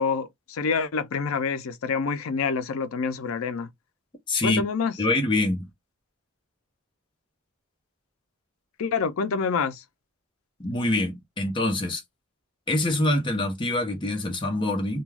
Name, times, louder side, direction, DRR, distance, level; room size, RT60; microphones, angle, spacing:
voice 1, 0.0-3.7 4.4-4.9 8.8-9.8, left 5 dB, 75° left, 0.4 m, -27 dB
voice 2, 4.3-4.6 5.0-5.7 10.6-12.0 12.7-15.0, left 2 dB, 25° left, 0.7 m, -25 dB
2.2 x 2.2 x 3.2 m
head